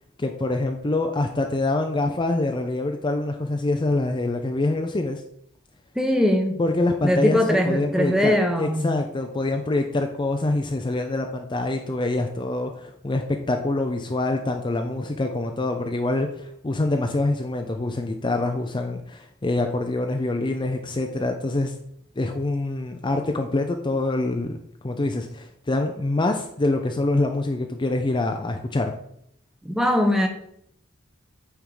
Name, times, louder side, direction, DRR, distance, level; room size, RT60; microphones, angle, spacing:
voice 1, 0.2-5.2 6.6-21.7 22.2-24.6 24.8-28.9, left 2 dB, 25° left, 0.5 m, -25 dB
voice 2, 5.9-6.6 7.0-8.9 29.6-30.3, left 1 dB, 5° right, 0.9 m, -21 dB
8.9 x 3.6 x 4.7 m
head